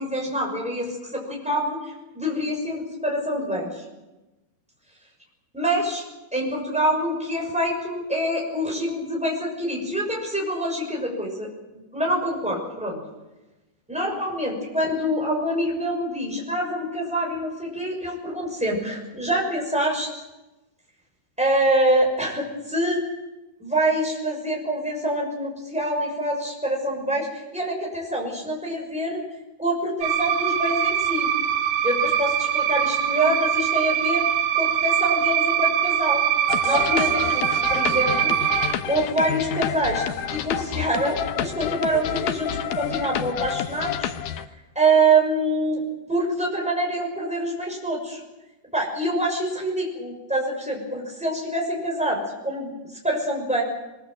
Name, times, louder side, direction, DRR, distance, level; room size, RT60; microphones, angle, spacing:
voice 1, 0.0-3.8 5.5-6.0 6.3-13.0 13.9-20.1 21.4-23.0 23.6-29.2 29.6-31.3 31.8-34.2 34.5-36.2 36.6-38.4 38.9-44.1 44.7-48.2 48.7-52.7 53.0-53.6, right 1 dB, ahead, -1 dB, 6.0 m, -25 dB
sound 1, 30.0-38.7, right 10 dB, 90° right, 3.4 m, -23 dB
sound 2, 36.5-44.5, left 9 dB, 70° left, 2.0 m, -29 dB
22.5 x 22.0 x 7.8 m, 1.1 s
omnidirectional pair, 4.8 m